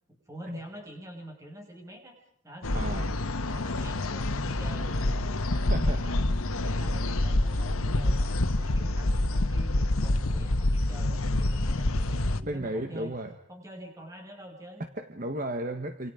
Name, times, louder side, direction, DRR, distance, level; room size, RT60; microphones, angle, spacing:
voice 1, 0.1-2.2 2.4-3.1 3.4-6.3 6.6-8.3 8.6-13.1 13.5-14.8, right 1 dB, 15° right, 2 dB, 6.2 m, -45 dB
sound 1, 2.6-12.4, left 1 dB, 85° left, 1.3 m, -27 dB
voice 2, 2.7-3.1 5.7-6.1 12.4-13.3 15.0-16.1, right 1 dB, 40° right, 6 dB, 1.5 m, -34 dB
27.5 x 27.0 x 5.1 m, 0.68 s
head